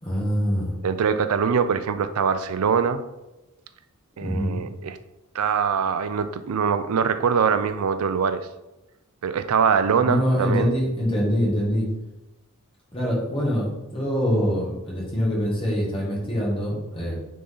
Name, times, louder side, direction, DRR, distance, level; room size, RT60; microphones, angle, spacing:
voice 1, 0.0-0.7 4.2-4.6 10.0-11.9 12.9-17.2, equal, 25° left, -4 dB, 1.8 m, -24 dB
voice 2, 0.8-3.0 4.2-5.0 5.3-8.5 9.2-10.7, right 6 dB, 90° right, 11 dB, 0.4 m, -23 dB
6.7 x 3.9 x 3.9 m, 0.99 s
head